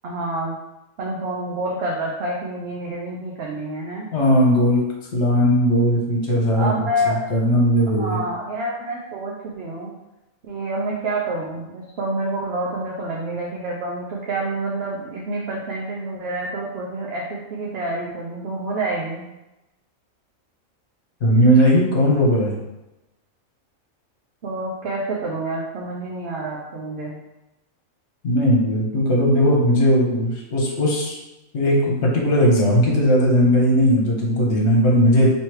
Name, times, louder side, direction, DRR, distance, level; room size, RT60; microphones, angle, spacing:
voice 1, 0.0-0.5 1.0-4.1 6.5-7.3 7.9-9.9 10.4-17.2 17.5-19.3 24.4-27.2, right 2 dB, 55° right, -3 dB, 0.8 m, -28 dB
voice 2, 4.1-4.8 5.1-6.7 7.0-8.2 21.2-22.6 28.2-31.2 31.5-35.3, equal, 55° left, -2 dB, 1.3 m, -18 dB
3.2 x 3.0 x 4.6 m, 0.96 s
omnidirectional pair, 1.4 m